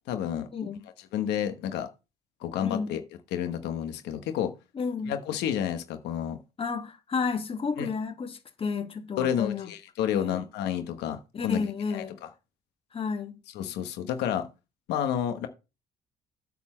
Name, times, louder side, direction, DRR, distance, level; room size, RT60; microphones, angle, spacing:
voice 1, 0.1-0.5 1.1-1.9 2.4-3.0 3.3-4.5 5.1-6.4 7.8-7.9 9.2-11.6 11.9-12.0 13.5-14.4 14.9-15.5, left 9 dB, 80° left, 1.2 m, -30 dB
voice 2, 2.6-3.0 4.7-5.1 6.6-9.7 10.1-10.4 11.3-12.2 12.9-13.4, left 5 dB, 35° left, 1.6 m, -31 dB
8.7 x 4.3 x 7.2 m
cardioid pair, 110°, 17 cm